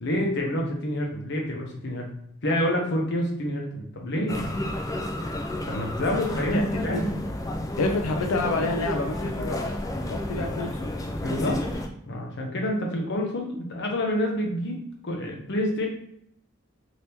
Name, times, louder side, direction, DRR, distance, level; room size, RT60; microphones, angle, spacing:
voice 1, 0.0-2.1 2.4-4.8 5.7-7.1 11.2-11.6 12.1-15.9, left 1 dB, 60° left, 1 dB, 0.8 m, -28 dB
sound 1, 4.3-11.9, left 1 dB, 15° left, 0.4 m, -31 dB
voice 2, 6.5-7.0 7.8-9.7 10.1-10.9, left 2 dB, 90° left, 4 dB, 0.4 m, -29 dB
3.4 x 2.8 x 2.9 m, 0.72 s
head